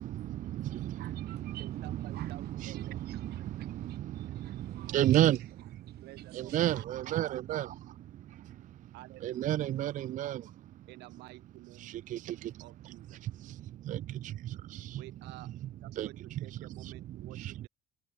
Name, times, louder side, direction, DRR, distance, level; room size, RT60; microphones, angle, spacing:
voice 1, 0.0-5.4 5.8-6.8, right 16 dB, 70° right, 1.0 m, -51 dB
voice 2, 0.5-3.3 3.6-3.9 4.9-5.4 6.3-7.7 9.2-10.4 11.8-12.4 13.9-14.0 14.7-15.0 16.0-16.1 16.8-16.9 17.4-17.5, right 13 dB, 50° right, 0.4 m, -31 dB
voice 3, 1.6-3.0 6.0-6.5 8.9-9.5 10.9-12.0 12.6-13.2 15.0-17.7, right 21 dB, 90° right, 2.0 m, -51 dB
cardioid pair, 110°, 17 cm